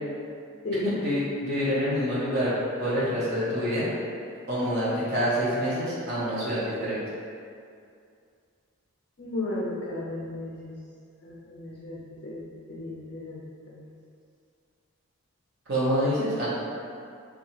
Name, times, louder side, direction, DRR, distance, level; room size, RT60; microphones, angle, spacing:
voice 1, 0.8-2.5 2.8-3.9 4.5-7.0 15.7-16.5, equal, 50° right, -10 dB, 0.7 m, -26 dB
voice 2, 9.2-10.7 11.2-13.8, left 2 dB, 50° left, -7 dB, 0.4 m, -35 dB
2.8 x 2.3 x 2.8 m, 2.3 s
head